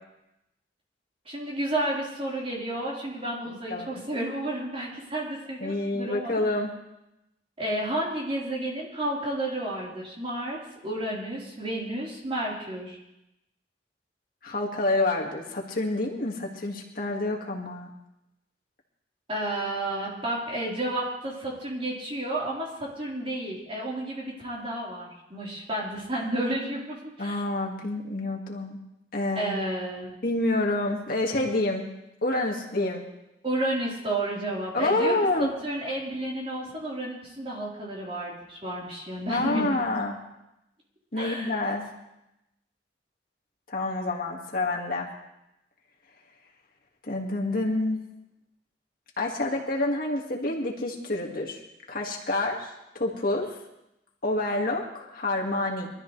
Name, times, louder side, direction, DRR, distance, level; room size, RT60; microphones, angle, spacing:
voice 1, 1.3-6.3 7.6-13.0 19.3-27.3 29.4-30.1 33.4-39.8 41.2-41.6, right 1 dB, 35° right, -5 dB, 4.3 m, -31 dB
voice 2, 5.6-6.7 14.4-17.9 27.2-28.8 29.1-29.6 30.2-31.9 32.2-33.0 34.7-35.5 39.3-40.2 41.1-41.9 43.7-45.1 47.1-48.0 49.2-51.6 51.9-53.5 54.2-55.9, left 2 dB, 55° left, -1 dB, 2.1 m, -28 dB
23.0 x 13.5 x 3.3 m, 0.90 s
head